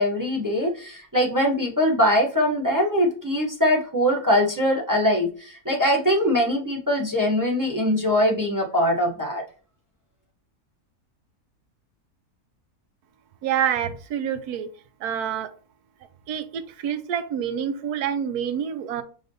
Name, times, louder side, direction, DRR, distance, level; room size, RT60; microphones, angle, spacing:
voice 1, 0.0-9.4, equal, 20° right, -1 dB, 0.5 m, -22 dB
voice 2, 13.4-14.7 15.0-15.5 16.3-19.0, right 8 dB, 80° right, 11 dB, 1.1 m, -27 dB
5.0 x 3.5 x 2.6 m, 0.40 s
omnidirectional pair, 1.6 m